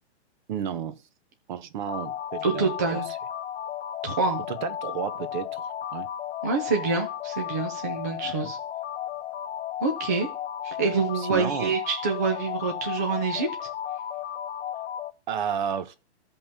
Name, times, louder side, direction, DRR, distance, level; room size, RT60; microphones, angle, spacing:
voice 1, 0.5-1.0 1.5-3.0 4.5-6.1 8.2-8.5 11.1-11.7 15.3-16.0, right 8 dB, 45° right, 0.9 m, -32 dB
sound 1, 1.9-15.1, left 10 dB, 75° left, 0.6 m, -34 dB
voice 2, 2.4-3.1 4.0-4.5 6.4-8.6 9.8-10.3 10.6-13.5, right 4 dB, 15° right, 0.4 m, -26 dB
15.0 x 5.3 x 2.7 m
hypercardioid pair, 165°, 34 cm